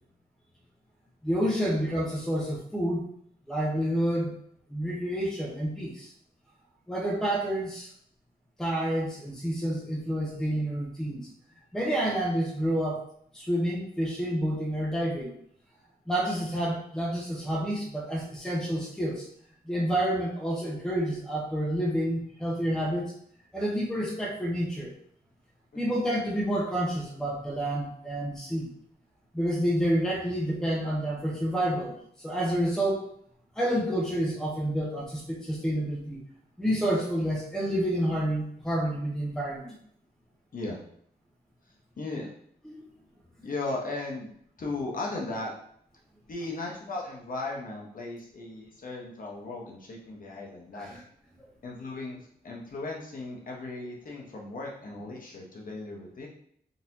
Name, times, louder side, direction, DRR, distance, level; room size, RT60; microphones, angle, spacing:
voice 1, 1.2-3.1 3.5-4.4 4.7-6.1 6.9-7.9 8.6-11.3 11.7-13.0 13.3-15.3 16.1-19.3 19.6-23.1 23.5-24.9 25.8-28.7 29.3-33.1 33.6-36.2 36.6-39.7 42.6-42.8 50.7-50.9, equal, 5° left, -3 dB, 0.7 m, -29 dB
voice 2, 42.0-42.3 43.4-44.3 44.6-45.5 46.3-50.9 51.6-56.3, left 2 dB, 55° left, -2 dB, 0.7 m, -36 dB
3.8 x 2.8 x 2.6 m, 0.65 s
wide cardioid pair, 170°, 17 cm